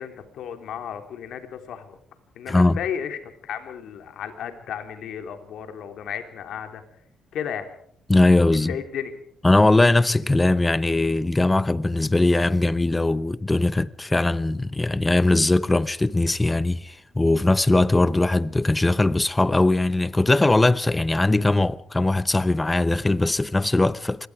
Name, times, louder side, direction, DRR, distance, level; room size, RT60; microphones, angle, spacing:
voice 1, 0.0-2.0 2.3-6.8 7.3-7.7 8.5-9.1, left 8 dB, 75° left, 3.3 m, -34 dB
voice 2, 2.5-2.8 8.1-8.7 9.4-24.3, left 2 dB, 15° left, 0.8 m, -20 dB
26.0 x 21.5 x 4.9 m
cardioid pair, 90°, 0 cm